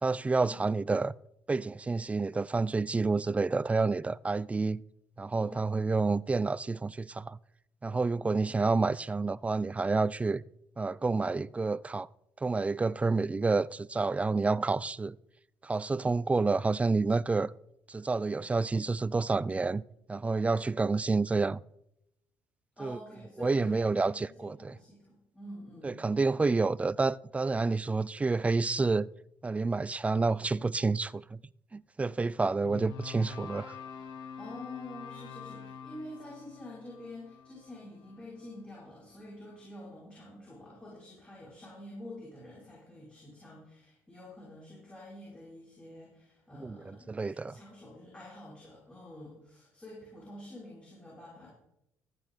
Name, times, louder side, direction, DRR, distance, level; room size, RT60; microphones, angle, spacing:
voice 1, 0.0-1.1 1.5-4.8 5.2-7.4 7.8-10.4 10.8-12.1 12.4-15.2 15.6-17.5 17.9-19.8 20.1-21.6 22.8-23.0 23.4-24.7 25.8-29.1 29.4-31.4 31.7-33.7 46.6-47.6, right 3 dB, 20° right, 0.4 m, -29 dB
voice 2, 5.4-5.7 22.8-26.2 34.4-51.5, left 1 dB, 15° left, 5.8 m, -48 dB
sound 1, 32.6-38.9, left 7 dB, 75° left, 1.8 m, -46 dB
15.0 x 8.9 x 4.1 m
supercardioid pair, 85°, 7 cm